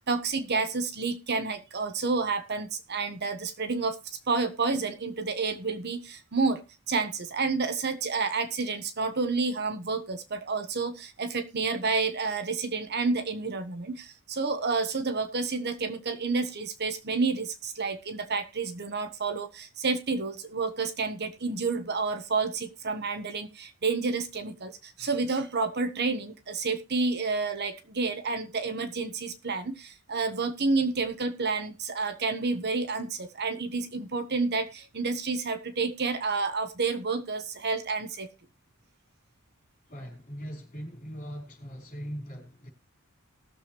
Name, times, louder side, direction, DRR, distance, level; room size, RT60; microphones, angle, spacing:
voice 1, 0.0-4.0 4.3-38.3, right 4 dB, 50° right, 1.1 m, -30 dB
voice 2, 39.9-42.7, equal, 40° left, 4.8 m, -40 dB
19.0 x 7.1 x 3.1 m
head